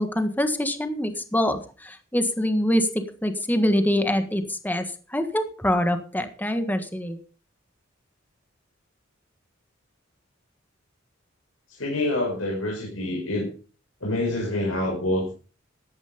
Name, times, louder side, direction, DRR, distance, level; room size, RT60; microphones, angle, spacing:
voice 1, 0.0-4.8 5.1-7.2, equal, 10° left, 8 dB, 1.6 m, -24 dB
voice 2, 11.7-13.5 14.0-15.3, left 1 dB, 85° left, -1 dB, 5.7 m, -26 dB
14.5 x 10.5 x 5.3 m, 0.37 s
head